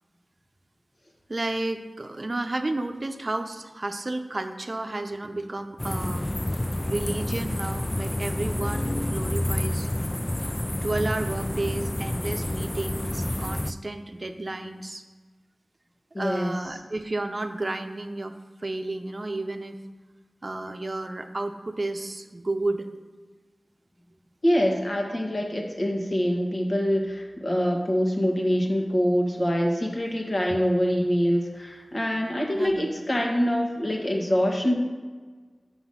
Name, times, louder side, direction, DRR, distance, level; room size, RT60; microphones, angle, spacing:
voice 1, 1.3-6.3 6.8-9.9 10.8-15.0 16.2-18.3 18.6-19.8 20.4-22.9 32.5-32.9, right 2 dB, 50° right, 6 dB, 0.7 m, -32 dB
sound 1, 5.8-13.7, left 1 dB, 25° left, 0.3 m, -29 dB
voice 2, 16.1-16.5 24.4-34.7, equal, 50° left, 1 dB, 1.7 m, -25 dB
7.1 x 6.0 x 5.8 m, 1.4 s
cardioid pair, 40°, 0 cm